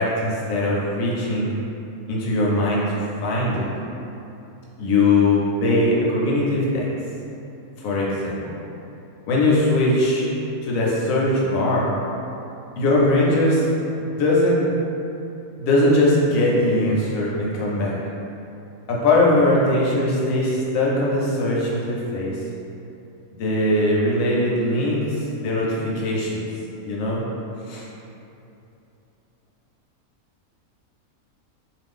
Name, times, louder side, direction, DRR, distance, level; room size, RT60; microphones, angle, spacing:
voice 1, 0.0-1.5 2.1-3.7 4.8-6.9 7.8-8.5 9.3-10.3 10.6-11.9 12.8-13.7 14.0-14.7 15.6-18.0 18.9-22.4 23.4-26.4 26.8-27.2 27.7-27.8, left 1 dB, 75° left, -5 dB, 1.0 m, -20 dB
2.5 x 2.3 x 3.5 m, 2.8 s
omnidirectional pair, 1.5 m